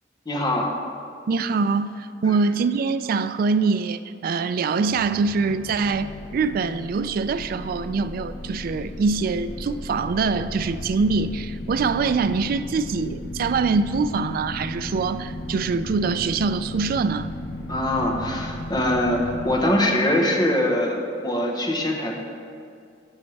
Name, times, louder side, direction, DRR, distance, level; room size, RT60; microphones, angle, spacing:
voice 1, 0.3-0.7 17.7-22.1, left 1 dB, 20° left, 0 dB, 1.0 m, -23 dB
voice 2, 1.3-17.3, right 4 dB, 50° right, 12 dB, 0.3 m, -24 dB
sound 1, 4.8-19.6, left 1 dB, 60° left, 0.6 m, -35 dB
14.5 x 5.3 x 3.3 m, 2.3 s
head